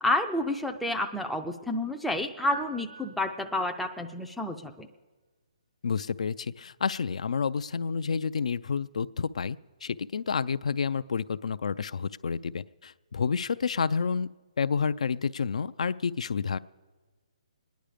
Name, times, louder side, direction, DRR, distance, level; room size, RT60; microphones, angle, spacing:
voice 1, 0.0-4.9, left 1 dB, ahead, 3 dB, 0.4 m, -30 dB
sound 1, 2.5-4.0, right 4 dB, 90° right, 0.7 m, -46 dB
voice 2, 5.8-14.3 14.6-16.6, left 5 dB, 75° left, 16 dB, 0.4 m, -29 dB
23.0 x 10.5 x 5.0 m, 1.3 s
hypercardioid pair, 165°, 4 cm